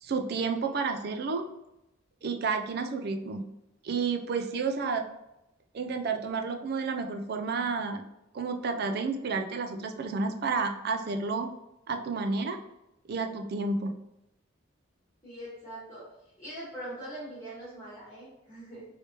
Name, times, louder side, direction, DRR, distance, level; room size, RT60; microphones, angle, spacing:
voice 1, 0.0-1.5 2.2-3.5 3.8-5.1 5.7-8.0 8.3-11.5 11.9-12.6 13.1-14.0, right 4 dB, 50° right, 6 dB, 0.4 m, -31 dB
voice 2, 15.2-16.0 16.4-18.8, right 1 dB, 15° left, -10 dB, 1.2 m, -42 dB
3.2 x 3.1 x 2.8 m, 0.89 s
head